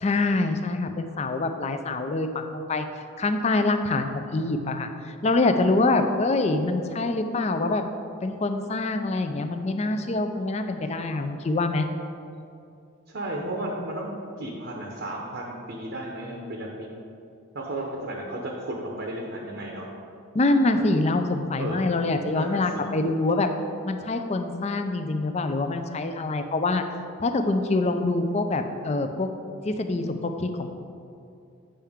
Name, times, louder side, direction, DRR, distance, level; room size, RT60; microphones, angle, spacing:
voice 1, 0.0-2.9 3.2-7.8 8.2-11.9 20.3-23.5 23.8-26.8 27.2-29.3 29.6-30.7, left 2 dB, 30° left, 7 dB, 0.4 m, -25 dB
voice 2, 13.1-14.1 14.4-16.9 17.5-19.9 21.6-21.8 22.3-22.8, right 1 dB, 55° right, 0 dB, 0.8 m, -33 dB
8.8 x 5.6 x 3.5 m, 2.6 s
head